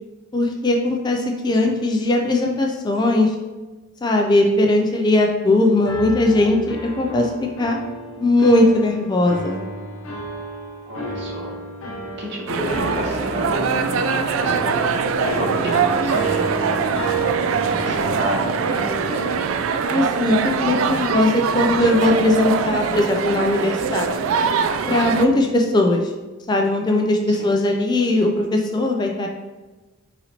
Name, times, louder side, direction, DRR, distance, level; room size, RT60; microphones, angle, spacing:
voice 1, 0.3-3.3 4.0-7.8 8.2-9.7 19.9-24.3 24.9-26.0 26.5-29.3, left 2 dB, 20° left, 1 dB, 0.3 m, -19 dB
sound 1, 5.8-19.6, right 1 dB, 80° left, 0.8 m, -30 dB
voice 2, 10.9-11.5 11.9-14.8 15.2-16.9 17.6-18.5 18.8-19.5 25.3-25.6 27.3-27.5, equal, 55° right, 0 dB, 0.9 m, -31 dB
sound 2, 12.5-25.3, right 6 dB, 75° right, 0.3 m, -23 dB
4.3 x 4.0 x 2.8 m, 1.2 s
head